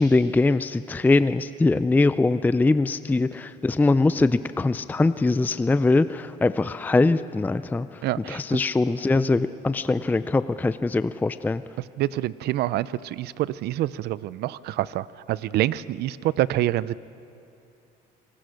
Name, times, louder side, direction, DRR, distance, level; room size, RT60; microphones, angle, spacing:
voice 1, 0.0-11.6, left 3 dB, 10° left, 13 dB, 0.4 m, -22 dB
voice 2, 8.0-8.4 12.0-17.0, right 14 dB, 75° right, 18 dB, 0.6 m, -26 dB
28.0 x 20.0 x 6.4 m, 2.7 s
cardioid pair, 110°, 17 cm